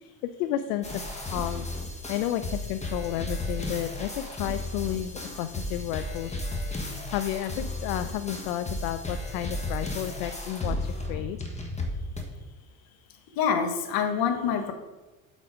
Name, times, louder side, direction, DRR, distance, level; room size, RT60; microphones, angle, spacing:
voice 1, 0.0-1.7 2.1-6.3 7.1-11.4, left 12 dB, 75° left, 10 dB, 0.5 m, -32 dB
sound 1, 0.8-12.2, left 1 dB, 15° left, 1.4 m, -34 dB
voice 2, 13.4-14.7, left 7 dB, 60° left, 6 dB, 1.3 m, -26 dB
8.0 x 4.1 x 4.8 m, 1.1 s
hypercardioid pair, 85°, 41 cm